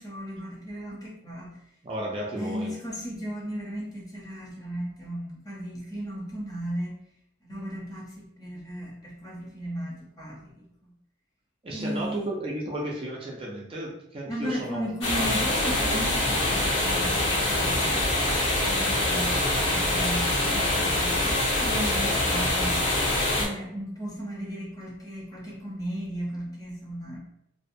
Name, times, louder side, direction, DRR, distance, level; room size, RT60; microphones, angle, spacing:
voice 1, 0.0-1.5 2.4-6.9 7.4-10.9 11.7-12.3 14.3-18.3 18.6-22.8 23.3-27.2, equal, 20° left, -4 dB, 0.7 m, -35 dB
voice 2, 1.8-2.7 11.6-14.9, right 1 dB, 30° right, -3 dB, 0.4 m, -33 dB
sound 1, 15.0-23.4, left 1 dB, 70° left, 0.9 m, -25 dB
2.6 x 2.2 x 2.6 m, 0.78 s
head